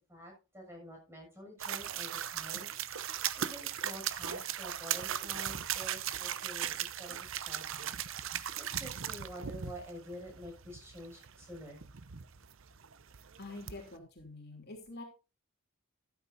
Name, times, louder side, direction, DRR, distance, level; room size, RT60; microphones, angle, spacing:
voice 1, 0.1-2.7 3.1-7.9 8.6-11.8, equal, 10° right, 0 dB, 6.6 m, -48 dB
sound 1, 1.6-14.0, right 10 dB, 60° right, 0.7 m, -38 dB
voice 2, 13.4-15.0, left 2 dB, 45° left, 1 dB, 3.1 m, -46 dB
13.5 x 12.0 x 2.7 m, 0.30 s
head